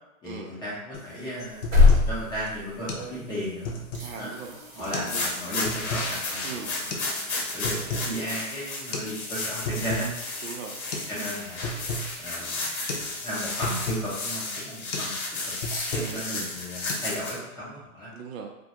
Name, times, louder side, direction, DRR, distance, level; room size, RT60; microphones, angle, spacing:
voice 1, 0.2-3.8 4.1-4.3 4.7-7.2 7.5-10.1 11.1-11.7 12.2-12.7 13.2-15.1 15.4-15.5 15.9-18.1, equal, 10° left, -9 dB, 0.6 m, -35 dB
sound 1, 0.9-1.1 1.4-2.1 2.5-2.6 2.9-3.1 3.4-4.2 4.8-5.2 5.4-6.1 6.9-7.1 7.4-8.1 8.4-8.5 8.9-9.1 9.4-10.1 10.5-10.6 10.9-11.1 11.4-12.1 12.5-12.6 12.9-13.1 13.4-14.1 14.5-14.6 14.9-15.1 15.4-16.2 16.5-16.9, left 1 dB, 60° left, 0.6 m, -33 dB
sound 2, 1.4-3.6 3.9-13.5 16.3-16.4, left 4 dB, 45° right, 0.8 m, -29 dB
voice 2, 4.0-5.2 6.4-6.8 10.4-10.8 16.0-16.5 18.1-18.5, right 6 dB, 75° right, 3 dB, 0.6 m, -39 dB
sound 3, 4.9-17.4, left 2 dB, 90° left, 0.8 m, -33 dB
2.3 x 2.2 x 2.8 m, 0.98 s
hypercardioid pair, 135°, 42 cm